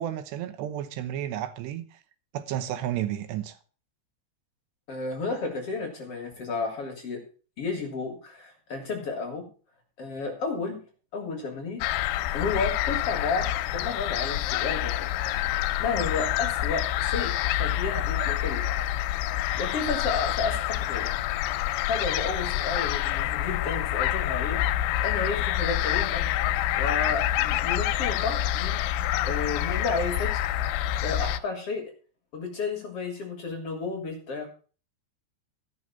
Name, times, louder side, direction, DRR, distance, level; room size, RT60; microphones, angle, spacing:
voice 1, 0.0-2.0 2.3-3.6 18.2-18.3, right 11 dB, 85° right, 3.2 m, -32 dB
voice 2, 4.9-7.2 7.6-9.4 10.0-10.8 11.1-11.8 12.3-15.1 15.8-18.6 19.6-21.1 21.8-24.6 25.0-26.3 26.8-28.8 29.3-30.5 30.8-31.9 32.3-34.5, left 4 dB, 45° left, 2.3 m, -32 dB
sound 1, 11.8-31.4, left 13 dB, 90° left, 2.8 m, -27 dB
14.0 x 6.4 x 5.7 m
omnidirectional pair, 4.8 m